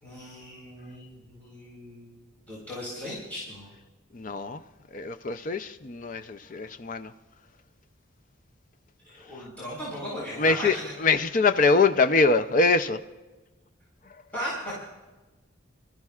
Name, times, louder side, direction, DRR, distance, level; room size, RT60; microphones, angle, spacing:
voice 1, 0.0-3.7 9.1-10.9 14.3-14.8, equal, 5° left, 4.2 m, -37 dB
voice 2, 4.1-4.6 4.9-7.1 10.4-13.0, left 3 dB, 40° left, 0.5 m, -23 dB
26.0 x 13.5 x 2.4 m
head